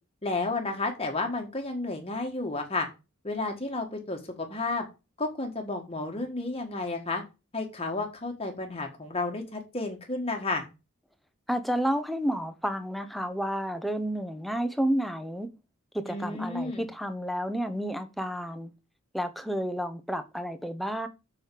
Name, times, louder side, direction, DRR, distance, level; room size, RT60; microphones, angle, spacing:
voice 1, 0.2-2.9 3.2-4.9 5.2-7.2 7.5-10.7 16.1-16.9, left 3 dB, 30° left, 1.5 m, -32 dB
voice 2, 11.5-15.5 15.9-18.7 19.1-21.1, equal, ahead, 1.0 m, -30 dB
7.8 x 6.4 x 6.9 m
head